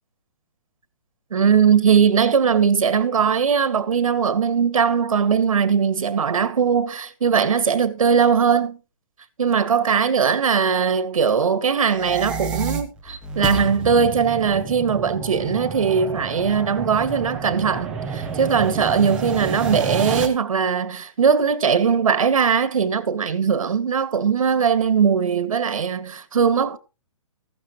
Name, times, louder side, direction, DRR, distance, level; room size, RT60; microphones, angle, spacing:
voice 1, 1.3-8.8 9.4-26.8, right 6 dB, 70° right, 2.0 m, -20 dB
sound 1, 11.8-20.3, right 5 dB, 5° right, 0.8 m, -29 dB
15.0 x 12.0 x 3.1 m
hypercardioid pair, 180°, 18 cm